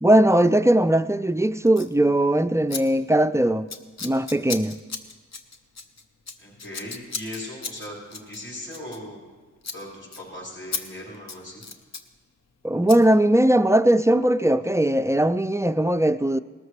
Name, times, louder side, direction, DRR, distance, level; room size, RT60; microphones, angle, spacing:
voice 1, 0.0-3.7 4.0-4.8 12.6-16.4, right 1 dB, 10° right, 0.3 m, -19 dB
Scissors, 1.7-1.9 2.7-2.8 3.1-3.3 3.7-9.3 9.6-9.8 10.1-10.2 10.7-10.8 11.1-12.1 12.9-13.0, left 4 dB, 55° left, 1.0 m, -35 dB
voice 2, 6.4-9.2 9.7-11.6, left 1 dB, 40° left, 5.2 m, -38 dB
19.0 x 13.5 x 3.3 m
cardioid pair, 75°, 31 cm